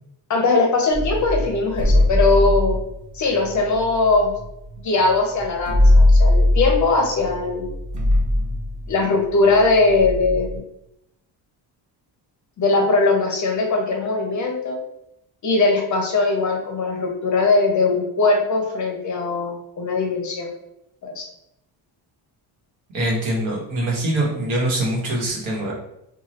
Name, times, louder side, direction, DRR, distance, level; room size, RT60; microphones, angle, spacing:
voice 1, 0.3-2.8 3.1-4.3 4.8-7.7 8.9-10.6 12.6-14.8 15.4-20.5 21.0-21.3, left 3 dB, 40° left, 2 dB, 0.5 m, -20 dB
sound 1, 0.9-4.8 5.1-5.2 5.4-10.6, left 1 dB, 40° right, 0.6 m, -20 dB
voice 2, 22.9-25.7, right 1 dB, 80° right, -2 dB, 1.1 m, -23 dB
3.0 x 2.3 x 2.8 m, 0.81 s
cardioid pair, 155°, 47 cm